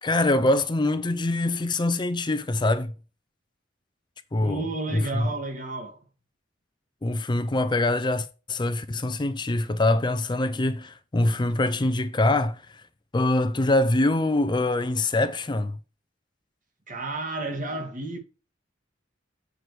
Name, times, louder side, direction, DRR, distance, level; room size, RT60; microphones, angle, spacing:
voice 1, 0.0-2.9 4.3-5.3 7.0-12.8 13.1-15.8, left 2 dB, 25° left, 0.5 m, -24 dB
voice 2, 4.4-6.0 16.9-18.2, right 2 dB, 45° right, 1.9 m, -32 dB
7.7 x 4.9 x 4.6 m
head